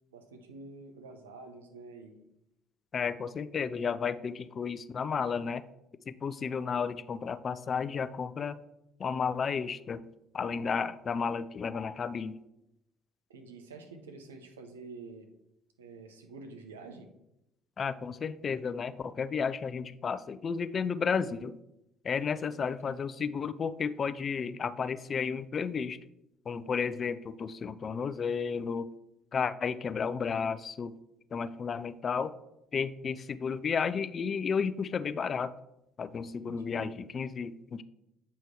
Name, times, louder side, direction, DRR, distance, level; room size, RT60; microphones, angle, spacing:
voice 1, 0.1-2.2 10.4-10.8 11.1-11.2 13.3-15.3 15.8-17.1 22.3-22.6 22.9-23.0 36.4-36.9, right 3 dB, 90° right, 5 dB, 0.7 m, -48 dB
voice 2, 2.9-5.7 6.1-8.6 9.0-10.0 10.3-12.4 17.8-21.6 22.0-26.0 26.5-28.9 29.3-30.9 31.3-32.3 32.7-35.5 36.0-37.8, left 6 dB, 45° left, 13 dB, 0.4 m, -32 dB
8.1 x 3.1 x 4.6 m, 0.86 s
hypercardioid pair, 55°, 0 cm